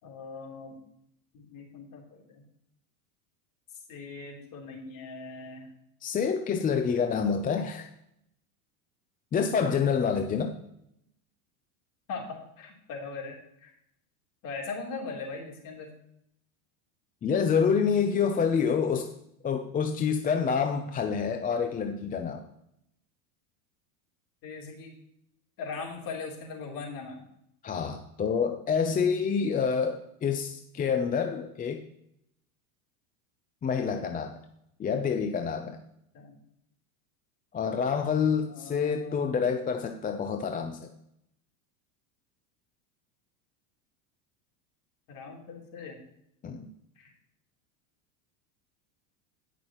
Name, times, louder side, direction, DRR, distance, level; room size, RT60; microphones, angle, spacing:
voice 1, 0.0-0.7 1.3-2.4 3.9-5.7 12.1-13.4 13.6-13.7 14.4-15.9 24.4-24.9 25.6-27.2 36.1-36.4 38.5-39.3 45.1-46.0 47.0-47.1, left 4 dB, 45° left, 0 dB, 3.6 m, -40 dB
voice 2, 6.0-7.9 9.3-10.5 17.2-19.1 19.4-22.4 27.6-31.8 33.6-34.4 34.8-35.8 37.5-40.9 46.4-46.7, left 6 dB, 20° left, 5 dB, 0.6 m, -27 dB
18.0 x 6.1 x 3.0 m, 0.77 s
supercardioid pair, 130°, 44 cm